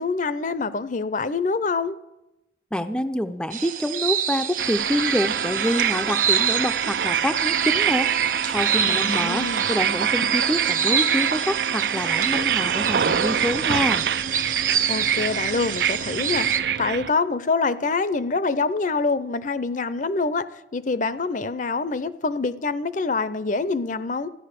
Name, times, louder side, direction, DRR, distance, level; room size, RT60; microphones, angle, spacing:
voice 1, 0.0-2.0 8.9-9.7 14.9-16.5 16.8-20.5 20.7-24.3, left 4 dB, 45° left, 15 dB, 0.6 m, -25 dB
voice 2, 2.7-8.1 8.4-14.0, equal, 5° left, 8 dB, 0.5 m, -26 dB
sound 1, 3.5-16.6, right 8 dB, 45° right, 1.0 m, -27 dB
sound 2, 4.6-17.1, right 8 dB, 65° right, 0.5 m, -25 dB
14.5 x 10.5 x 6.7 m, 0.93 s
head